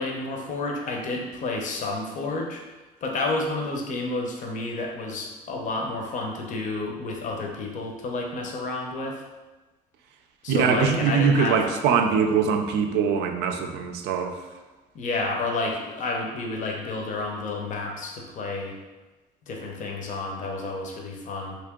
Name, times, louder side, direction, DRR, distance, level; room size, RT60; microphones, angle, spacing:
voice 1, 0.0-2.6 3.0-9.2 10.4-11.6 14.9-18.8 19.5-21.6, left 2 dB, 50° left, 0 dB, 0.6 m, -30 dB
voice 2, 10.5-14.4, right 6 dB, 80° right, 5 dB, 0.4 m, -22 dB
2.9 x 2.8 x 3.5 m, 1.2 s
cardioid pair, 110°, 17 cm